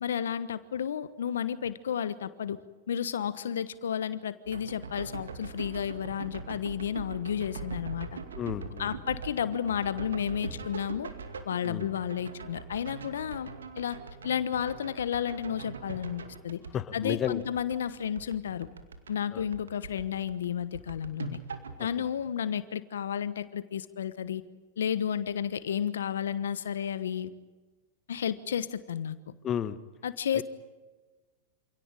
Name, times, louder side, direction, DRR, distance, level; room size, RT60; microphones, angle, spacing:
voice 1, 0.0-2.6 2.9-8.1 8.8-11.1 11.4-13.5 13.8-14.0 14.2-16.6 16.9-18.7 19.1-21.4 21.8-24.4 24.8-27.3 28.1-29.2 30.0-30.4, left 8 dB, 80° left, 15 dB, 1.2 m, -32 dB
sound 1, 4.5-19.1 19.4-21.9, right 4 dB, 85° right, 2.4 m, -41 dB
voice 2, 8.3-8.9 11.6-11.9 16.7-17.4 19.3-19.4 29.4-29.8 30.3-30.4, left 9 dB, 30° left, 14 dB, 1.5 m, -32 dB
27.5 x 17.5 x 9.0 m, 1.3 s
hypercardioid pair, 105°, 0 cm